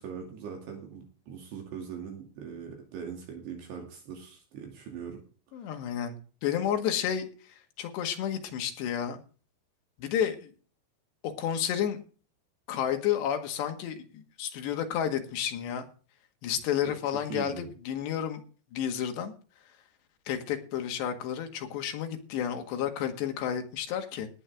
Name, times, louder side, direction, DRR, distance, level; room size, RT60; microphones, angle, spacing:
voice 1, 0.0-5.2 5.6-5.8 16.9-17.0 17.3-17.7, right 7 dB, 70° right, 2 dB, 4.5 m, -41 dB
voice 2, 5.5-9.2 10.0-10.5 11.2-12.0 12.7-15.9 16.4-18.4 18.7-19.3 20.3-24.3, left 9 dB, 75° left, 5 dB, 3.9 m, -31 dB
18.5 x 9.3 x 3.5 m, 0.38 s
omnidirectional pair, 5.1 m